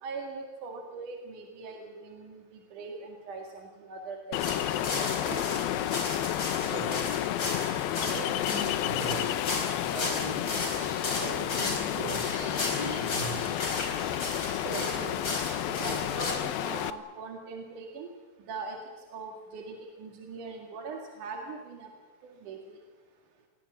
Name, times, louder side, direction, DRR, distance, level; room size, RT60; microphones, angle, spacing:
voice 1, 0.0-5.1 14.5-15.2 15.7-18.1 18.5-18.8 19.1-21.9 22.2-22.8, right 4 dB, 60° right, 2 dB, 3.4 m, -41 dB
Ocean, 4.3-16.9, left 13 dB, 80° left, 2.7 m, -31 dB
sound 1, 4.4-16.3, left 2 dB, 30° left, 4.7 m, -35 dB
voice 2, 6.3-9.3 9.9-10.5 11.2-13.6, right 3 dB, 35° right, 1 dB, 5.1 m, -40 dB
27.5 x 21.0 x 7.4 m, 1.3 s
omnidirectional pair, 4.2 m